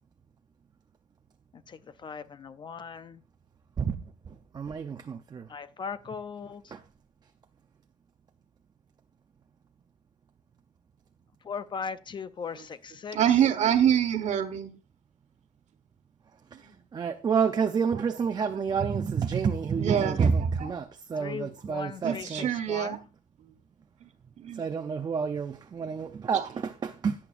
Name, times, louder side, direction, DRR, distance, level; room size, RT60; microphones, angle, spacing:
voice 1, 1.7-3.2 5.5-6.8 11.4-13.2 21.2-23.0, left 6 dB, 30° left, 0.5 m, -38 dB
voice 2, 4.5-5.4 6.7-6.8 16.9-22.5 24.6-27.2, right 6 dB, 25° right, 0.6 m, -28 dB
voice 3, 13.1-14.7 16.6-16.7 18.7-18.9 19.8-20.7 22.0-23.0 24.4-24.7 26.3-26.5, right 9 dB, 50° right, 1.4 m, -26 dB
17.0 x 8.7 x 2.5 m
cardioid pair, 155°, 15 cm